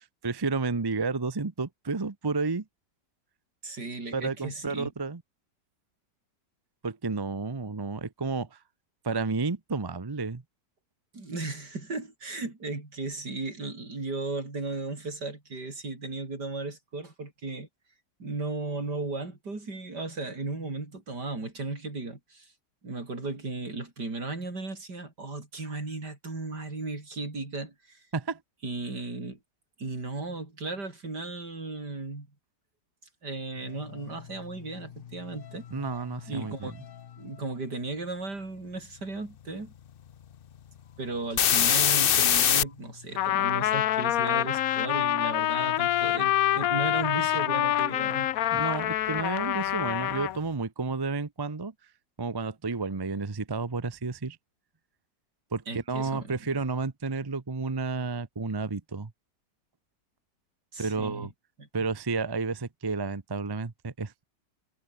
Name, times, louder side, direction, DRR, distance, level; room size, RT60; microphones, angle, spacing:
voice 1, 0.0-2.6 4.1-5.2 6.8-8.6 9.0-10.4 28.1-28.4 35.7-36.7 48.5-51.7 52.2-54.4 55.5-59.1 60.8-61.3 61.7-64.2, right 4 dB, 20° right, 0.6 m, -31 dB
voice 2, 3.6-4.9 11.1-17.7 18.2-22.5 22.8-28.1 28.6-29.4 29.8-32.3 33.2-35.7 36.3-36.7 37.2-39.7 41.0-48.3 55.7-56.3 60.7-61.3 61.6-61.7, right 3 dB, 70° right, 5.7 m, -36 dB
sound 1, 33.9-34.0 34.8-37.0 41.4-42.6 45.1-47.2 47.5-47.6, left 9 dB, 85° left, 0.4 m, -25 dB
Trumpet, 43.2-50.4, left 13 dB, 65° left, 1.0 m, -26 dB
omnidirectional pair, 1.9 m